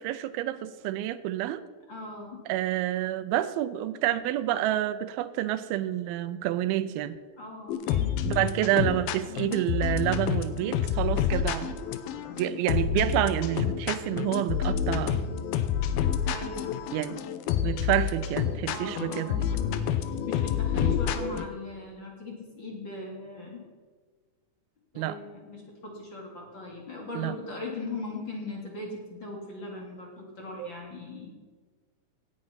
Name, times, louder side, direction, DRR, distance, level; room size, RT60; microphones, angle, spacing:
voice 1, 0.0-1.6 2.5-7.2 8.3-11.8 12.3-15.2 16.9-17.2 17.6-19.5 20.8-21.0 25.0-25.2 27.2-27.3 30.6-30.7, right 13 dB, 85° right, 14 dB, 2.5 m, -28 dB
voice 2, 1.9-2.4 7.4-8.6 16.3-16.8 18.7-23.6 24.9-31.3, left 3 dB, 35° left, -1 dB, 2.4 m, -39 dB
sound 1, 7.7-21.5, left 8 dB, 85° left, 2.7 m, -28 dB
17.5 x 8.8 x 5.7 m, 1.4 s
omnidirectional pair, 4.2 m